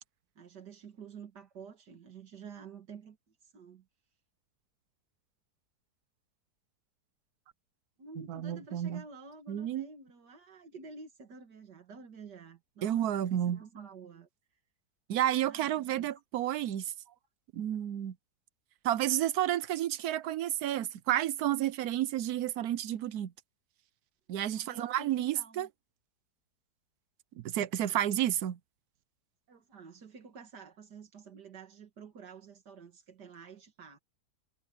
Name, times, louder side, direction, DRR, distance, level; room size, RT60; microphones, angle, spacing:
voice 1, 0.4-3.9 8.0-14.3 15.4-16.1 17.1-17.2 24.5-25.7 29.5-34.0, right 5 dB, 90° right, 2.5 m, -50 dB
voice 2, 8.3-9.0 9.5-9.9 12.8-13.6 15.1-16.9 17.5-18.1 18.8-23.3 24.3-25.7 27.4-28.6, right 12 dB, 70° right, 1.2 m, -31 dB
omnidirectional pair, 1.7 m